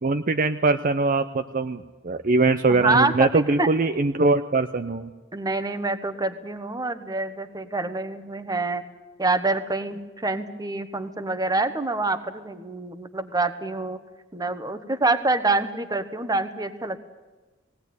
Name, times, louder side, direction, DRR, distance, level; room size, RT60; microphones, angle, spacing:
voice 1, 0.0-5.1, right 3 dB, 45° right, 9 dB, 0.6 m, -22 dB
voice 2, 2.7-3.7 5.3-8.8 9.2-14.0 14.3-17.0, right 2 dB, 20° right, 10 dB, 1.2 m, -26 dB
19.5 x 17.5 x 9.5 m, 1.3 s
head